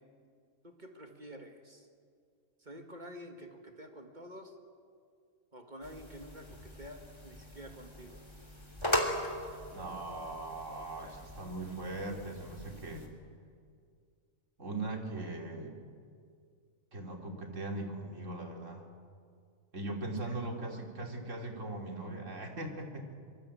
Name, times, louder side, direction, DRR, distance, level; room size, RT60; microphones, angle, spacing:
voice 1, 0.6-1.9 2.6-4.5 5.5-8.2 20.6-20.8, equal, 35° right, 3 dB, 2.0 m, -49 dB
sound 1, 5.8-13.1, left 1 dB, 20° left, 3.1 m, -39 dB
voice 2, 9.7-13.1 14.6-15.8 16.9-18.9 19.7-23.1, right 2 dB, 70° right, 2 dB, 3.3 m, -40 dB
25.0 x 23.0 x 8.5 m, 2.2 s
omnidirectional pair, 1.4 m